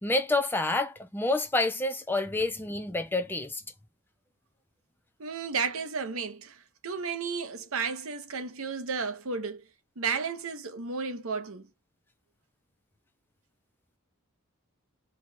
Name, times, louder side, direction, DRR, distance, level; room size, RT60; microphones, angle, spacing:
voice 1, 0.0-3.6, left 2 dB, 10° left, 0.5 m, -28 dB
voice 2, 5.2-9.6 10.0-11.7, right 5 dB, 75° right, 0.9 m, -33 dB
4.5 x 2.3 x 4.1 m
head